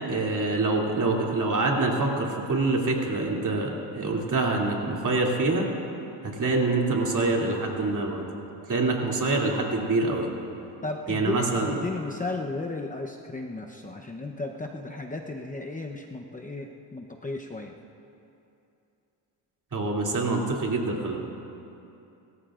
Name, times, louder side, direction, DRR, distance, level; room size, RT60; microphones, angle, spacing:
voice 1, 0.1-5.7 6.4-8.3 8.7-10.3 11.1-11.7 19.7-21.2, right 3 dB, 45° right, -1 dB, 2.9 m, -25 dB
voice 2, 10.8-17.7, left 2 dB, 20° left, 2 dB, 0.9 m, -34 dB
27.5 x 14.5 x 2.5 m, 2.7 s
supercardioid pair, 75°, 44 cm